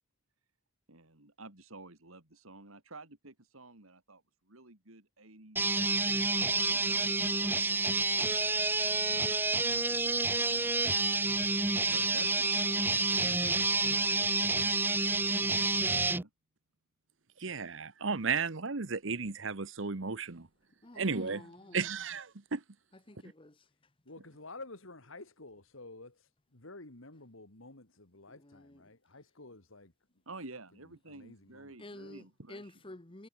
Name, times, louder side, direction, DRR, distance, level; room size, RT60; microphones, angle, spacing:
voice 1, 0.9-5.7 6.2-7.7 8.2-11.0 11.9-14.5 14.9-16.3 30.3-32.7, right 2 dB, 80° right, 3.7 m, -53 dB
sound 1, 5.6-16.2, right 3 dB, 10° right, 0.7 m, -29 dB
voice 2, 17.4-20.5 21.0-22.6, right 5 dB, 60° right, 1.1 m, -34 dB
voice 3, 20.8-21.9 22.9-23.7 28.3-28.9 31.8-33.3, left 1 dB, 25° left, 1.3 m, -51 dB
voice 4, 24.1-29.9 31.1-32.1, left 2 dB, 70° left, 2.8 m, -51 dB
head